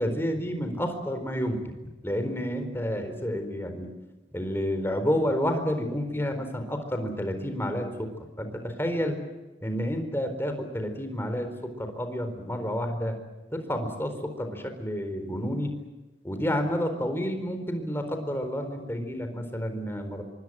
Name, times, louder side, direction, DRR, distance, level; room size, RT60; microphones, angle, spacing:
voice 1, 0.0-1.6 2.0-3.9 4.3-9.2 9.6-13.2 13.5-15.7 16.2-20.2, equal, 15° left, 7 dB, 4.2 m, -30 dB
26.0 x 24.0 x 7.7 m, 1.1 s
head